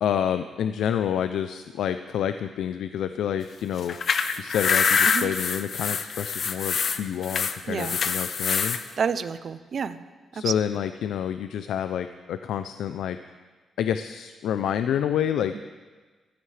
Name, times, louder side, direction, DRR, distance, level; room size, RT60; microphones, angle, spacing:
voice 1, 0.0-4.0 4.4-8.8 10.3-13.2 13.8-15.6, left 9 dB, 85° left, 10 dB, 0.4 m, -28 dB
sound 1, 3.8-8.8, left 6 dB, 45° left, 0.6 m, -25 dB
voice 2, 7.7-8.0 9.0-10.0 10.3-10.5 15.5-15.6, right 6 dB, 40° right, 13 dB, 0.5 m, -29 dB
15.0 x 14.5 x 3.3 m, 1.4 s
wide cardioid pair, 170°, 0 cm